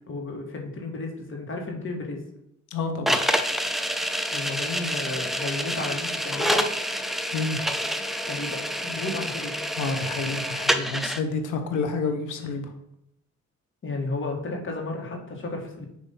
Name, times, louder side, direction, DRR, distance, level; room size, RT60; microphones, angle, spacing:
voice 1, 0.1-2.2 4.3-6.7 8.2-9.6 13.8-15.9, left 3 dB, 40° left, 1 dB, 1.8 m, -33 dB
voice 2, 2.7-3.2 7.3-7.6 9.8-12.7, left 4 dB, 80° left, 6 dB, 1.2 m, -29 dB
sound 1, 3.1-11.2, equal, ahead, 0.5 m, -27 dB
7.2 x 3.1 x 5.6 m, 0.76 s
cardioid pair, 90°, 30 cm